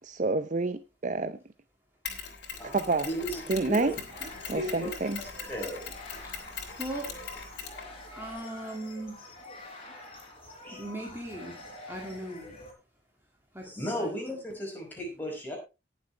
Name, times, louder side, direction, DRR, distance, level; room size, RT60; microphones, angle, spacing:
voice 1, 0.1-1.3 2.7-3.1 3.5-3.9 4.5-5.2, right 3 dB, 40° right, 12 dB, 0.6 m, -28 dB
Mechanisms, 2.0-8.4, left 6 dB, 65° left, 3.2 m, -41 dB
voice 2, 2.6-5.9 10.6-10.8 13.6-15.6, equal, 10° left, -1 dB, 5.5 m, -36 dB
sound 1, 3.9-12.7, left 2 dB, 30° left, 4.3 m, -47 dB
voice 3, 6.8-7.2 8.1-9.2 10.7-11.5 11.9-12.5 13.5-13.7 14.0-14.1, right 1 dB, 15° right, 0 dB, 2.1 m, -38 dB
19.0 x 7.3 x 3.3 m, 0.28 s
head